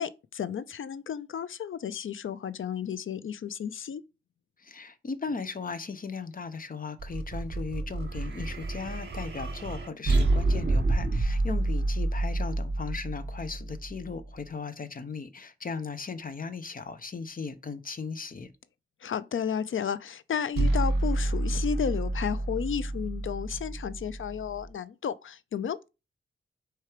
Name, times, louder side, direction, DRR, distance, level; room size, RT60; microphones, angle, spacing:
voice 1, 0.0-4.0 19.0-25.9, left 7 dB, 70° left, 0.5 m, -33 dB
voice 2, 4.6-18.5, left 5 dB, 40° left, 0.8 m, -37 dB
sound 1, 7.0-14.3 20.6-24.7, right 2 dB, 55° right, 1.7 m, -29 dB
4.7 x 4.5 x 4.9 m
wide cardioid pair, 95°, 21 cm